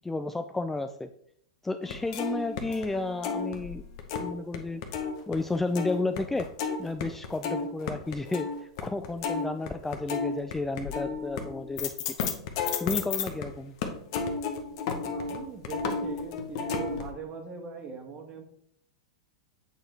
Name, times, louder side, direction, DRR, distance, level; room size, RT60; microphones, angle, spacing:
voice 1, 0.0-1.1 1.6-3.8 4.2-4.8 5.3-6.5 6.8-8.5 8.8-11.9 12.2-12.3 12.8-13.8, left 3 dB, 10° left, 8 dB, 0.3 m, -32 dB
sound 1, 1.8-4.6 4.8-13.5 13.8-17.1, left 5 dB, 50° left, 1.0 m, -33 dB
voice 2, 15.1-18.4, right 5 dB, 30° right, 4 dB, 1.5 m, -40 dB
8.0 x 4.3 x 3.3 m, 0.67 s
hypercardioid pair, 105°, 3 cm